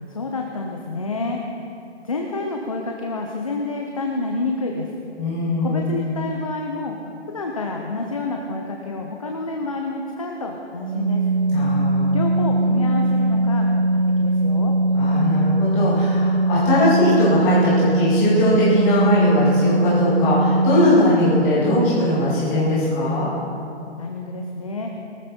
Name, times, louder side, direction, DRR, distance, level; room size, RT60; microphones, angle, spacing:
voice 1, 0.1-1.4 2.0-4.9 5.6-7.0 7.3-11.2 12.1-14.7 24.0-24.9, left 3 dB, 30° left, 1 dB, 0.7 m, -28 dB
voice 2, 5.2-5.9 11.5-12.2 14.9-23.3, left 1 dB, 10° left, -9 dB, 2.3 m, -20 dB
Organ, 10.8-21.4, right 1 dB, 40° right, 1.1 m, -20 dB
19.0 x 13.5 x 4.4 m, 2.6 s
hypercardioid pair, 180°, 35 cm